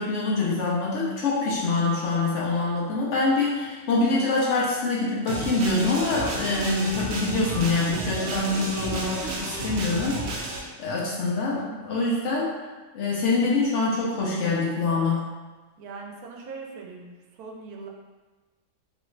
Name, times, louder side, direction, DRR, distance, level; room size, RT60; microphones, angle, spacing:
voice 1, 0.0-12.5 12.9-15.2, left 3 dB, 60° left, -5 dB, 0.8 m, -25 dB
sound 1, 5.3-10.6, right 2 dB, 65° right, 0.7 m, -32 dB
voice 2, 15.8-17.9, right 4 dB, 85° right, 0 dB, 1.1 m, -40 dB
3.0 x 2.4 x 3.1 m, 1.3 s
omnidirectional pair, 1.6 m